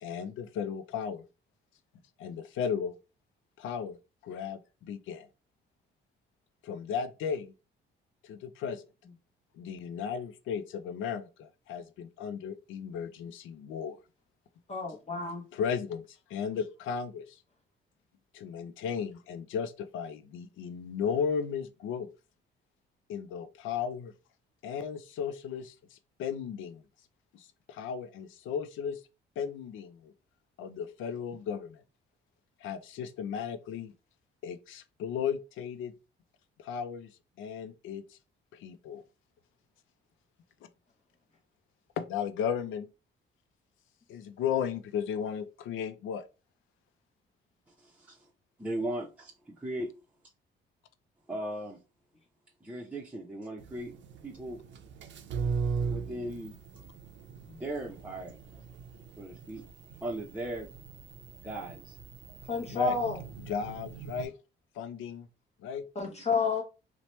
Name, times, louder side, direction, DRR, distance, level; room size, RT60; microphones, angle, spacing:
voice 1, 0.0-1.2 2.2-3.0 3.6-4.0 4.2-5.3 6.6-7.5 8.2-8.8 9.5-14.0 15.5-16.0 16.3-17.4 18.3-22.1 23.1-24.1 24.6-26.8 27.3-29.0 29.4-30.1 30.6-31.8 32.6-33.9 34.4-35.9 36.6-37.1 37.4-38.2 38.5-39.0 42.0-42.9 44.1-46.2 62.7-63.0 63.5-64.3 64.8-65.3 65.6-65.8, left 7 dB, 80° left, 0.4 m, -35 dB
voice 2, 14.7-15.4 62.5-63.2 66.0-66.6, left 4 dB, 35° left, 0.8 m, -30 dB
voice 3, 47.8-48.3 48.6-49.9 51.3-51.8 52.6-53.9 54.2-54.6 55.9-56.6 57.5-58.4 59.2-59.6 60.0-60.7 61.4-62.0 66.0-66.2, right 1 dB, 5° right, 0.6 m, -38 dB
sound 1, 53.6-64.3, right 5 dB, 70° right, 0.5 m, -39 dB
2.9 x 2.1 x 3.0 m
cardioid pair, 90°, 20 cm